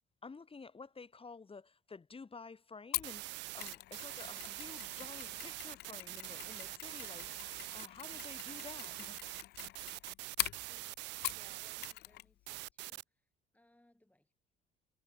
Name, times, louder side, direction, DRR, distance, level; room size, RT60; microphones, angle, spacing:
voice 1, 0.2-7.3 7.7-9.2, left 4 dB, 25° left, 3.3 m, -51 dB
Mechanisms, 2.9-11.5 11.8-12.3 12.5-12.7, left 16 dB, 55° left, 0.5 m, -43 dB
sound 1, 3.0-11.9 12.5-13.0, right 21 dB, 60° right, 0.5 m, -44 dB
voice 2, 10.6-13.0 13.5-14.3, left 1 dB, 5° left, 8.0 m, -68 dB
hypercardioid pair, 55°, 20 cm